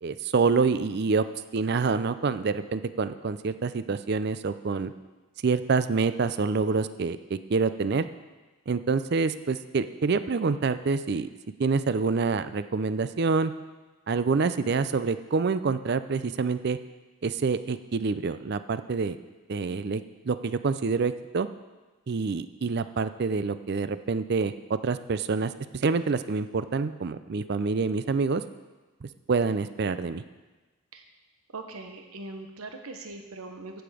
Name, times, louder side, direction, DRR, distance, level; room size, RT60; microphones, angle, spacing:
voice 1, 0.0-1.2 1.5-4.9 5.4-8.0 8.7-11.3 11.6-13.5 14.1-16.8 17.2-19.2 19.5-21.5 22.1-28.4 29.0-30.2, right 4 dB, 50° right, 12 dB, 0.4 m, -27 dB
voice 2, 31.5-33.8, right 3 dB, 90° right, 5 dB, 1.0 m, -41 dB
15.5 x 7.0 x 5.0 m, 1.2 s
head